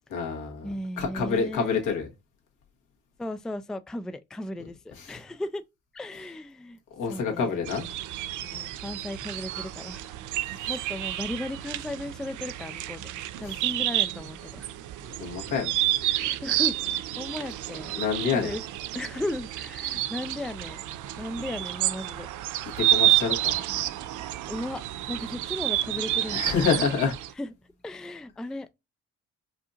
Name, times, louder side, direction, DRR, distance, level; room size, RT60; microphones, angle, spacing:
voice 1, 0.1-0.7 1.0-2.1 5.0-5.2 7.0-7.9 10.6-10.7 13.5-13.6 15.0-15.7 17.9-18.5 22.8-23.5 26.3-27.2, left 5 dB, 85° left, 1.7 m, -27 dB
voice 2, 0.6-1.9 3.2-5.6 5.9-6.8 7.1-7.6 8.4-10.1 10.7-13.1 13.4-14.7 16.0-18.0 18.3-18.6 18.9-20.9 21.2-22.3 24.5-26.6 27.4-27.5 27.8-28.7, left 1 dB, ahead, 0.3 m, -36 dB
sound 1, 7.6-27.3, right 14 dB, 80° right, 0.5 m, -30 dB
5.0 x 2.8 x 2.4 m
cardioid pair, 90°, 30 cm